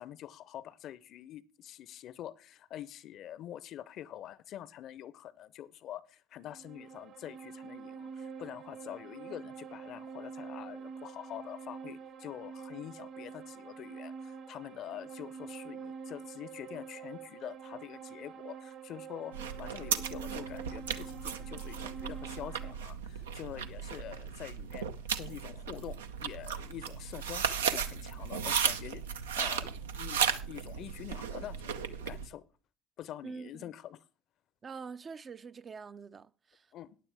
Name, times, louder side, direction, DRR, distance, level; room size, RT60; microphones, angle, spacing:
voice 1, 0.0-24.9 25.1-31.7 32.0-32.5 33.0-34.0 36.7-37.0, left 11 dB, 55° left, 0.6 m, -46 dB
sound 1, 6.4-22.7, right 6 dB, 60° right, 1.9 m, -46 dB
sound 2, 19.3-32.3, right 7 dB, 80° right, 0.6 m, -35 dB
voice 2, 33.2-33.7 34.6-36.6, right 5 dB, 35° right, 0.5 m, -45 dB
14.5 x 9.8 x 3.5 m
hypercardioid pair, 65°, 0 cm